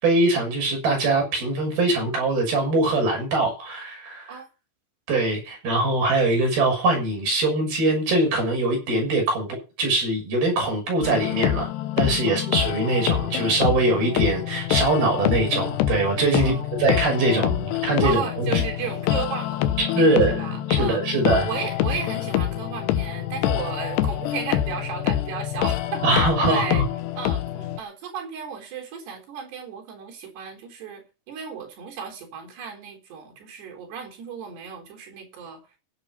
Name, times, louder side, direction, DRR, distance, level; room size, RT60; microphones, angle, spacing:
voice 1, 0.0-4.4 5.1-11.7 12.0-18.5 19.9-21.5 26.0-26.8, right 2 dB, 65° right, 8.3 m, -22 dB
sound 1, 11.0-27.8, left 13 dB, 90° left, 3.1 m, -26 dB
voice 2, 12.3-12.6 16.4-16.8 18.0-21.0 21.4-26.0 26.5-26.8 27.2-35.6, right 7 dB, 90° right, 5.8 m, -34 dB
15.5 x 8.5 x 5.5 m
omnidirectional pair, 4.6 m